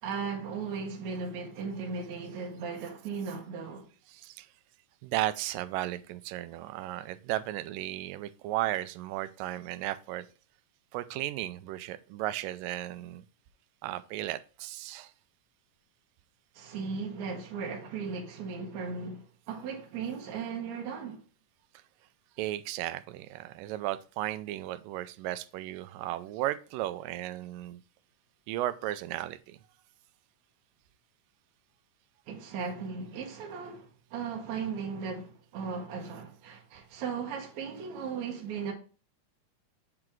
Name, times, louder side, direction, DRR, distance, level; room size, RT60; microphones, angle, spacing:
voice 1, 0.0-3.9 16.5-21.2 32.3-38.7, right 5 dB, 65° right, 2.3 m, -37 dB
voice 2, 4.1-4.5 5.0-10.3 10.9-13.2 13.8-15.1 22.4-27.8 28.5-29.6, right 15 dB, 90° right, 2.2 m, -35 dB
7.6 x 3.9 x 4.6 m
omnidirectional pair, 3.8 m